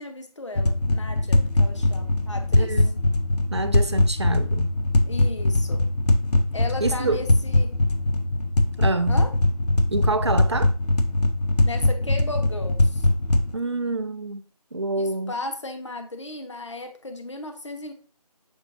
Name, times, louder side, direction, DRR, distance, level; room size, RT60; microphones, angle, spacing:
voice 1, 0.0-2.8 5.1-5.8 6.5-7.7 9.1-9.3 11.6-13.1 15.0-17.9, left 2 dB, 50° left, 0.7 m, -35 dB
sound 1, 0.6-13.5, left 2 dB, 80° left, 0.6 m, -22 dB
voice 2, 2.6-2.9 3.5-4.7 6.8-7.3 8.8-9.2 9.9-10.7 13.5-14.4 14.7-15.3, right 2 dB, 45° right, 0.4 m, -27 dB
6.2 x 2.9 x 2.6 m
figure-of-eight pair, 165°, 20 cm